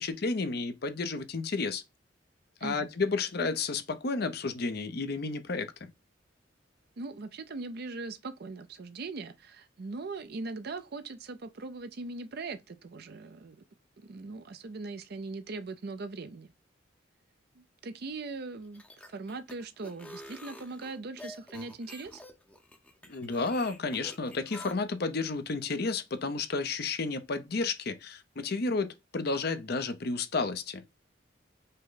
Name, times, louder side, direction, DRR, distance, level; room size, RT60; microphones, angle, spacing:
voice 1, 0.0-1.8 2.6-5.9 23.1-30.8, left 3 dB, 55° left, 0.6 m, -32 dB
voice 2, 7.0-13.6 14.0-16.5 17.6-18.8 19.1-22.2, right 3 dB, 50° right, 0.5 m, -40 dB
sound 1, 18.6-24.7, left 1 dB, 5° left, 0.7 m, -48 dB
5.4 x 2.1 x 3.8 m
head